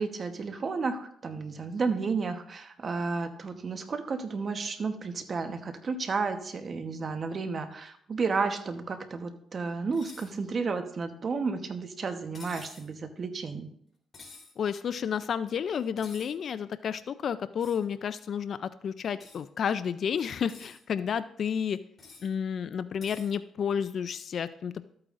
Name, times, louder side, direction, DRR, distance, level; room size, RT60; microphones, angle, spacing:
voice 1, 0.0-13.7, right 4 dB, 45° right, 7 dB, 1.0 m, -32 dB
sound 1, 9.9-10.3 12.3-12.9 14.1-14.5 16.0-16.3 17.6-17.8 19.2-19.4 20.3-20.8 22.0-22.3 23.0-23.3, left 4 dB, 40° left, 3.6 m, -49 dB
voice 2, 14.6-21.8 22.2-24.9, left 7 dB, 55° left, 14 dB, 0.4 m, -31 dB
13.0 x 8.7 x 2.5 m, 0.68 s
cardioid pair, 90°, 0 cm